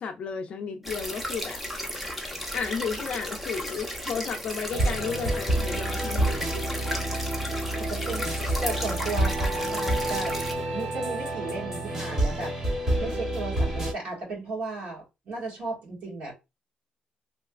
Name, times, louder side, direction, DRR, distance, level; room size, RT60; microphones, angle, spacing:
voice 1, 0.0-1.6 2.5-6.6, left 6 dB, 45° left, 0.5 m, -33 dB
sound 1, 0.8-10.5, equal, 5° right, 0.6 m, -34 dB
sound 2, 4.7-13.9, right 1 dB, 20° right, 1.0 m, -28 dB
voice 2, 7.1-8.3 8.6-10.4 10.7-12.6 13.0-16.3, right 3 dB, 55° right, 1.7 m, -35 dB
Wind instrument woodwind instrument, 8.6-13.0, right 5 dB, 75° right, 0.8 m, -38 dB
3.2 x 2.8 x 2.4 m
cardioid pair, 180°, 3 cm